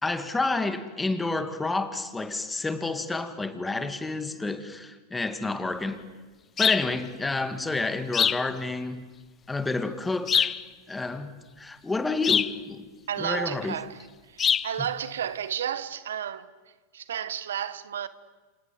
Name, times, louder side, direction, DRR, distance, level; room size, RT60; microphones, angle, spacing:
voice 1, 0.0-6.1 6.6-9.1 9.5-10.5 10.9-12.9 13.2-13.7 14.8-14.9, left 3 dB, 10° left, 2.4 m, -29 dB
sound 1, 6.6-6.9 8.1-8.5 10.3-10.6 12.2-12.6 14.4-14.7, left 8 dB, 25° left, 0.8 m, -23 dB
voice 2, 13.1-14.0 14.3-16.5 16.9-18.1, right 9 dB, 85° right, 1.2 m, -32 dB
27.5 x 27.5 x 7.9 m
hypercardioid pair, 105°, 0 cm